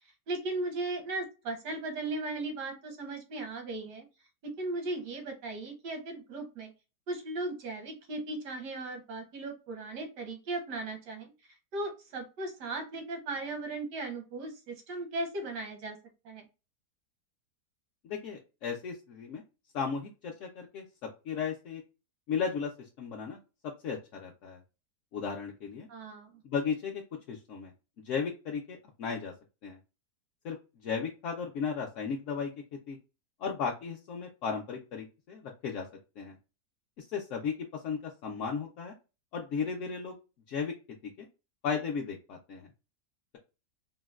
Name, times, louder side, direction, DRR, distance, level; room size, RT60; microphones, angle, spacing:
voice 1, 0.3-4.1 4.4-6.7 7.1-11.3 11.7-16.0 16.2-16.4 25.9-26.4, right 2 dB, 90° right, 5 dB, 1.5 m, -37 dB
voice 2, 18.0-19.4 19.7-20.8 21.2-21.8 22.3-24.6 25.1-25.9 26.4-27.0 27.3-27.7 28.0-29.3 29.6-29.8 30.4-30.6 30.8-32.5 32.9-33.0 33.4-35.9 36.2-36.4 37.0-38.9 39.3-40.2 40.5-40.7 41.2-41.3 41.6-42.7, left 6 dB, 70° left, 0 dB, 0.7 m, -35 dB
3.8 x 2.1 x 2.3 m, 0.30 s
omnidirectional pair, 1.7 m